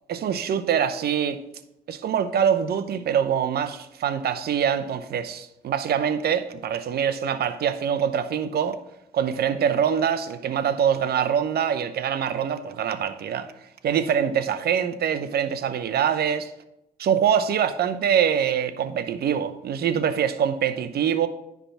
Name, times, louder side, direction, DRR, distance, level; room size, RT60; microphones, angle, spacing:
voice 1, 0.1-1.4 1.9-8.8 9.1-13.5 13.8-16.5 17.0-21.3, right 8 dB, 60° right, 0.7 m, -24 dB
9.9 x 3.5 x 5.8 m
hypercardioid pair, 50°, 18 cm